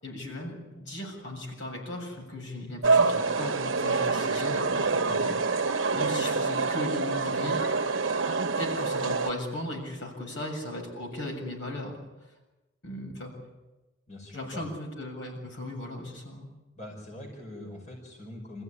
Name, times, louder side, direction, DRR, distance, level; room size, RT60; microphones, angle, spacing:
voice 1, 0.0-7.6 8.6-12.0 12.8-13.3 14.3-16.5, left 1 dB, 70° left, 1 dB, 7.2 m, -37 dB
sound 1, 2.8-9.3, right 4 dB, 75° right, 1.1 m, -26 dB
voice 2, 14.1-14.6 16.7-18.6, left 1 dB, 40° left, 0 dB, 5.6 m, -43 dB
27.0 x 15.5 x 9.9 m, 1.1 s
head